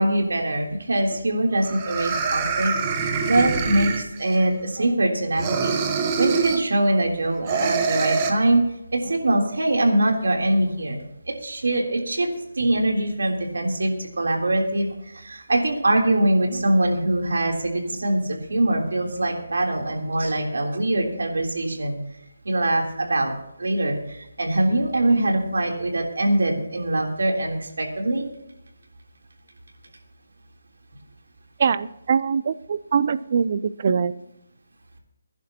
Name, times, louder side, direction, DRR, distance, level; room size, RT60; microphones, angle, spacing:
voice 1, 0.0-2.7 3.3-8.6 8.9-11.0 11.3-12.3 12.6-22.0 22.4-23.3 23.6-28.2, right 1 dB, 85° right, 1 dB, 3.4 m, -23 dB
sound 1, 1.1-1.2 1.6-4.4 5.3-6.7 7.5-8.3, right 5 dB, 20° right, 1.1 m, -25 dB
voice 2, 31.6-34.1, right 6 dB, 40° right, 16 dB, 0.5 m, -23 dB
22.0 x 10.5 x 2.9 m, 0.81 s
hypercardioid pair, 170°, 0 cm